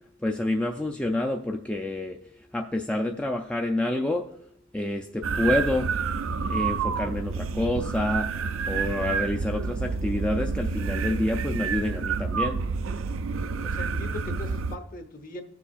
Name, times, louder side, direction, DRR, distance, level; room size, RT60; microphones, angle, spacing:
voice 1, 0.2-2.2 2.5-4.3 4.7-5.9 6.5-8.3 8.7-12.6, left 1 dB, 5° left, 2 dB, 0.4 m, -28 dB
sound 1, 5.2-14.8, right 5 dB, 75° right, 0.5 m, -29 dB
voice 2, 13.6-15.4, left 1 dB, 40° left, 6 dB, 1.0 m, -40 dB
16.5 x 6.9 x 2.4 m, 0.72 s
head